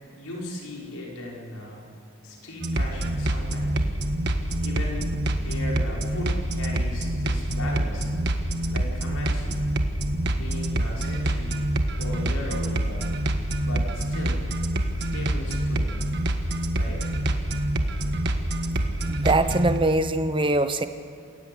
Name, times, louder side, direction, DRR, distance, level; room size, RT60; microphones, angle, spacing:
voice 1, 0.0-1.9 2.2-3.9 4.6-8.2 8.7-9.7 10.3-13.2 13.6-14.4 15.0-16.0 16.7-17.1, left 1 dB, 80° left, -3 dB, 5.8 m, -37 dB
sound 1, 2.6-19.8, right 1 dB, 50° right, 1.6 m, -26 dB
voice 2, 19.1-20.9, right 2 dB, 20° right, 10 dB, 0.9 m, -22 dB
28.5 x 16.5 x 8.1 m, 2.3 s
head